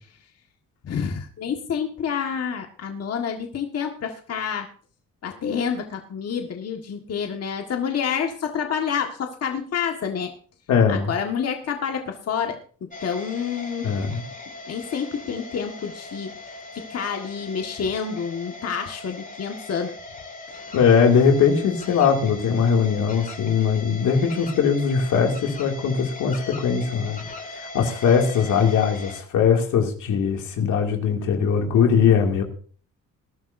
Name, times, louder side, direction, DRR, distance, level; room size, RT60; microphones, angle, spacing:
voice 1, 0.8-4.7 5.2-10.3 10.9-13.9 14.7-19.9, left 7 dB, 55° left, 3 dB, 1.7 m, -28 dB
voice 2, 10.7-11.1 13.8-14.2 20.7-27.2 27.5-32.4, left 6 dB, 80° left, 2 dB, 2.6 m, -20 dB
sound 1, 12.9-29.2, left 2 dB, 25° left, 2.2 m, -39 dB
20.0 x 12.0 x 2.7 m, 0.44 s
cardioid pair, 90°, 30 cm